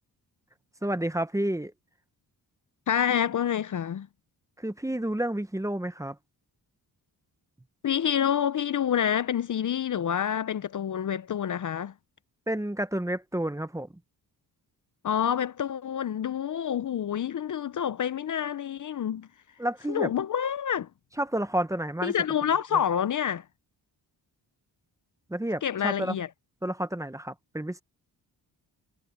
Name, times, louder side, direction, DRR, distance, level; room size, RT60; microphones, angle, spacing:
voice 1, 0.8-1.7 4.6-6.2 12.5-13.9 19.6-20.1 21.2-22.1 25.3-26.2 26.6-27.8, right 1 dB, 10° right, 1.0 m, -30 dB
voice 2, 2.9-4.1 7.8-11.9 15.0-19.3 19.9-20.9 22.0-23.4 25.6-26.3, left 9 dB, 50° left, 0.6 m, -27 dB
cardioid pair, 95°, 40 cm